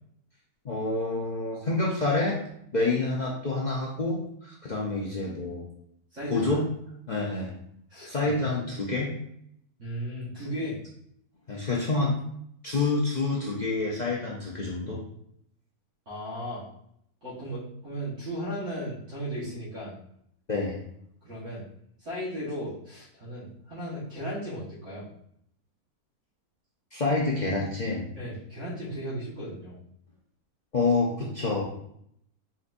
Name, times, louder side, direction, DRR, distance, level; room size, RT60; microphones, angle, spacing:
voice 1, 0.6-2.4 2.7-5.6 6.3-6.6 7.1-7.5 8.1-9.1 11.5-12.1 12.6-15.0 20.5-20.8 26.9-28.1 30.7-31.6, left 3 dB, 50° left, -4 dB, 0.5 m, -27 dB
voice 2, 6.1-6.6 7.9-8.4 9.8-10.8 16.1-16.6 17.2-19.9 21.2-21.6 22.0-25.1 28.2-29.8, equal, 50° right, -9 dB, 1.7 m, -36 dB
4.2 x 3.9 x 2.5 m, 0.71 s
omnidirectional pair, 1.6 m